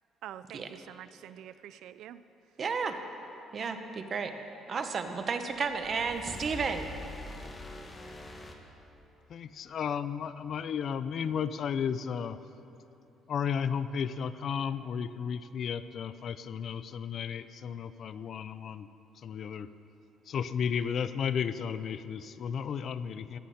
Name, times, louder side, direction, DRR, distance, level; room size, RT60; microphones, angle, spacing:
voice 1, 0.2-2.2, right 11 dB, 75° right, 14 dB, 0.3 m, -46 dB
voice 2, 2.6-3.0 3.5-4.3 4.7-6.9, right 5 dB, 40° right, 7 dB, 1.0 m, -32 dB
sound 1, 5.5-9.3, left 1 dB, 20° left, 1.2 m, -44 dB
voice 3, 9.3-12.4 13.3-18.9 19.2-19.7 20.3-23.4, left 7 dB, 50° left, 14 dB, 0.4 m, -33 dB
17.0 x 11.5 x 4.2 m, 3.0 s
cardioid pair, 120°, 0 cm